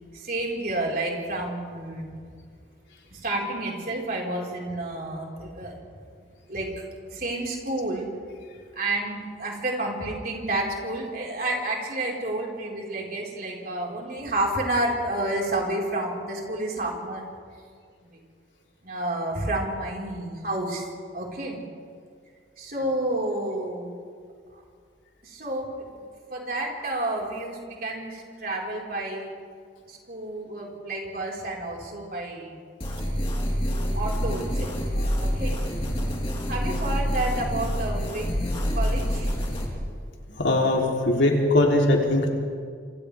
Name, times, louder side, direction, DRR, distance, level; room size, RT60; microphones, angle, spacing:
voice 1, 0.1-2.1 3.1-5.8 6.5-6.7 7.1-8.1 8.7-17.2 18.0-18.2 18.8-20.9 21.1-21.6 22.6-23.9 25.2-25.7 26.3-29.3 29.9-32.6 33.9-34.9 35.2-35.6 36.5-38.3 38.7-39.3, right 1 dB, 50° right, -3 dB, 4.9 m, -30 dB
sound 1, 32.8-39.7, equal, 30° left, 4.0 m, -27 dB
voice 2, 33.7-34.1 34.9-35.1 40.3-42.3, left 1 dB, 80° left, -1 dB, 3.5 m, -22 dB
28.0 x 27.5 x 3.6 m, 2.1 s
head